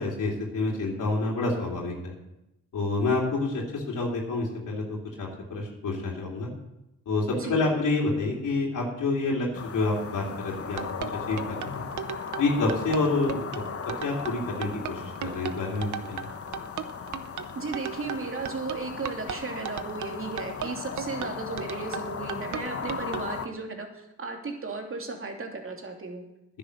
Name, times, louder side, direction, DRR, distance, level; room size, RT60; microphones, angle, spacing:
voice 1, 0.0-2.1 2.7-6.5 7.1-9.5 9.7-10.8 11.3-11.9 12.4-13.6 14.0-16.3, left 3 dB, 75° left, -2 dB, 3.1 m, -28 dB
sound 1, 9.5-23.5, left 6 dB, 45° left, 1.1 m, -37 dB
sound 2, 10.5-23.3, right 9 dB, 65° right, 0.8 m, -36 dB
voice 2, 17.5-26.2, right 3 dB, 40° right, 2 dB, 2.7 m, -35 dB
10.0 x 9.9 x 6.6 m, 0.89 s
cardioid pair, 75°, 32 cm